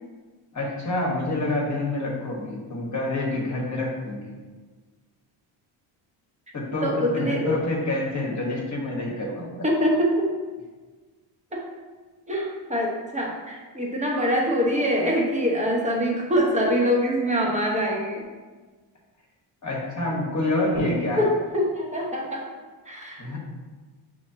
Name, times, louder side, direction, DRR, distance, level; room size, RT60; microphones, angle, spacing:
voice 1, 0.5-4.3 6.5-9.6 19.6-21.2 23.2-23.4, left 2 dB, 35° left, -2 dB, 1.2 m, -27 dB
voice 2, 6.8-7.6 9.6-10.3 11.5-11.6 12.3-18.2 21.2-22.5 22.9-23.4, equal, 15° right, -1 dB, 0.9 m, -24 dB
5.5 x 3.0 x 2.7 m, 1.4 s
cardioid pair, 90°, 50 cm